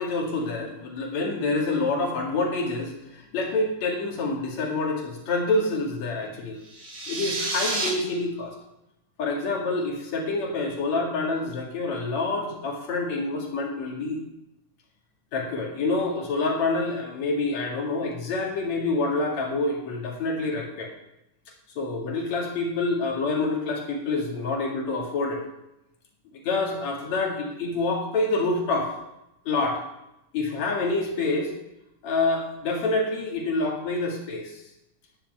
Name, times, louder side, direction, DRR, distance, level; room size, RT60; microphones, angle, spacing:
voice 1, 0.0-6.6 7.1-8.5 9.2-14.2 15.3-20.9 21.8-25.4 26.4-28.9 29.5-29.8 30.3-31.5 32.0-34.6, left 3 dB, 60° left, 0 dB, 3.4 m, -27 dB
sound 1, 6.6-7.9, right 2 dB, 45° right, 3.4 m, -29 dB
10.5 x 7.6 x 7.9 m, 0.88 s
omnidirectional pair, 3.7 m